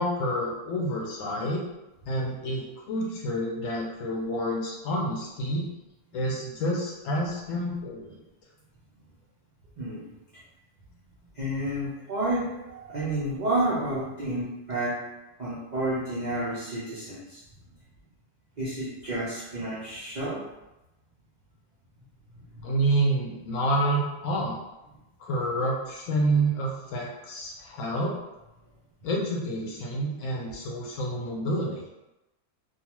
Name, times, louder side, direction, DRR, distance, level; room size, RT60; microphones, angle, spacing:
voice 1, 0.0-1.6 2.1-5.6 6.1-8.1 22.6-24.6 25.2-28.1 29.0-31.9, right 1 dB, 65° left, -2 dB, 0.9 m, -28 dB
voice 2, 9.8-10.1 11.3-15.0 15.4-17.4 18.6-20.4 22.5-22.7, right 1 dB, 55° right, -9 dB, 0.4 m, -30 dB
2.6 x 2.3 x 2.9 m, 0.97 s
omnidirectional pair, 1.6 m